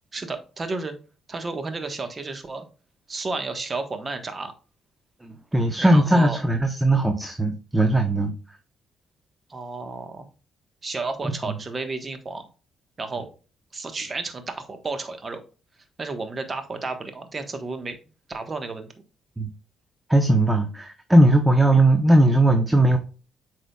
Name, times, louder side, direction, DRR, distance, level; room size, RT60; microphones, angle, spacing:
voice 1, 0.1-0.9 1.3-2.6 3.1-4.5 5.8-6.4 9.5-10.3 10.8-12.5 13.0-13.3 13.7-15.4 16.0-18.0 18.3-18.9, right 3 dB, 35° right, 7 dB, 1.3 m, -32 dB
voice 2, 5.2-8.3 11.5-11.6 19.4-19.5 20.1-23.0, right 1 dB, 10° right, 6 dB, 0.9 m, -19 dB
8.2 x 4.8 x 2.3 m, 0.34 s
cardioid pair, 90°, 0 cm